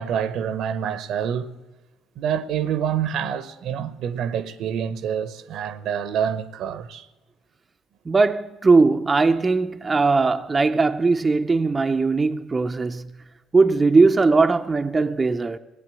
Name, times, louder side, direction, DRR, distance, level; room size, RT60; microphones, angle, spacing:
voice 1, 0.0-1.6 2.2-7.1, right 8 dB, 70° right, 0.9 m, -27 dB
voice 2, 8.1-13.1 13.5-15.6, right 3 dB, 25° right, 0.5 m, -19 dB
17.0 x 8.3 x 9.1 m
supercardioid pair, 85°, 0 cm